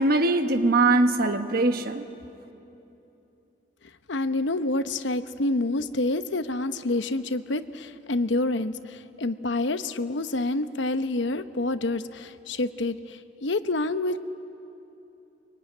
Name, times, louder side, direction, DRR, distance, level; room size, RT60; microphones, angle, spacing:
voice 1, 0.0-2.0, right 2 dB, 55° right, 7 dB, 1.3 m, -21 dB
voice 2, 4.1-14.2, left 2 dB, 75° left, 11 dB, 0.9 m, -28 dB
23.5 x 23.5 x 9.5 m, 2.9 s
head